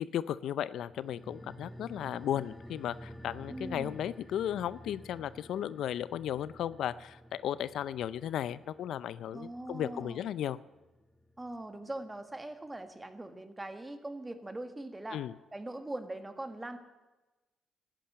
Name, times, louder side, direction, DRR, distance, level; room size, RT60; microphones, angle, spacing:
voice 1, 0.0-10.6 15.1-15.3, left 10 dB, 75° left, 17 dB, 0.4 m, -35 dB
sound 1, 0.9-11.8 12.0-12.1, equal, 5° left, 0.6 m, -51 dB
voice 2, 3.5-4.0 9.3-10.3 11.4-15.2 15.5-16.8, right 1 dB, 15° right, 8 dB, 1.6 m, -41 dB
13.5 x 10.0 x 8.7 m, 1.1 s
cardioid pair, 90°, 0 cm